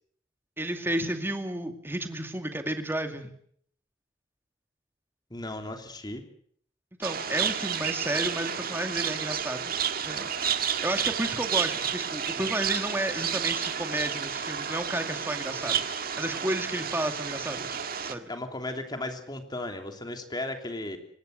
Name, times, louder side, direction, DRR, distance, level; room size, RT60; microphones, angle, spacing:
voice 1, 0.6-3.3 7.0-9.8 10.0-17.8 18.1-18.3, right 1 dB, 10° right, 6 dB, 2.3 m, -32 dB
voice 2, 5.3-6.2 18.3-21.0, left 2 dB, 25° left, 5 dB, 3.1 m, -35 dB
sound 1, 7.0-18.1, right 8 dB, 50° right, 1.7 m, -31 dB
25.5 x 20.0 x 6.6 m, 0.63 s
head